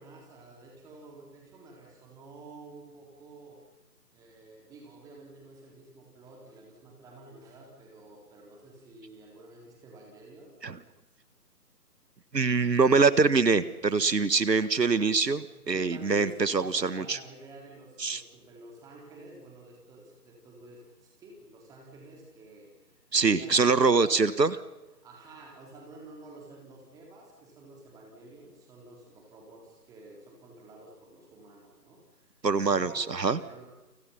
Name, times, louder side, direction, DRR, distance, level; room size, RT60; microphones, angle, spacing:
voice 1, 0.0-3.6 4.1-10.5 15.5-24.4 25.0-32.3 32.6-33.7, right 2 dB, 5° right, 0 dB, 3.9 m, -50 dB
voice 2, 12.3-17.2 18.0-18.2 23.1-24.6 32.4-33.4, right 4 dB, 90° right, 15 dB, 1.7 m, -24 dB
29.5 x 29.0 x 5.7 m, 1.0 s
figure-of-eight pair, 160°, 49 cm